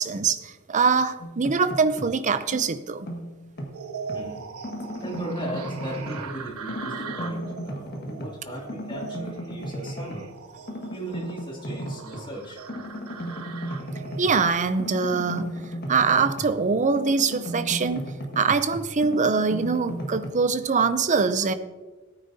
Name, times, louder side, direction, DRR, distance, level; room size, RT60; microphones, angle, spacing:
voice 1, 0.0-3.1 14.0-15.6 15.9-21.5, right 5 dB, 35° right, 12 dB, 0.5 m, -23 dB
sound 1, 1.2-2.2 2.5-4.3 4.6-6.4 6.7-8.4 8.7-10.3 10.7-12.3 12.7-16.7 16.9-20.3, equal, 45° left, 1.7 m, -35 dB
sound 2, 3.7-15.5, right 5 dB, 80° right, 1.2 m, -40 dB
voice 2, 4.1-4.5 5.0-10.3 10.9-12.9, right 1 dB, 20° left, -2 dB, 2.6 m, -37 dB
18.0 x 9.1 x 2.8 m, 1.3 s
head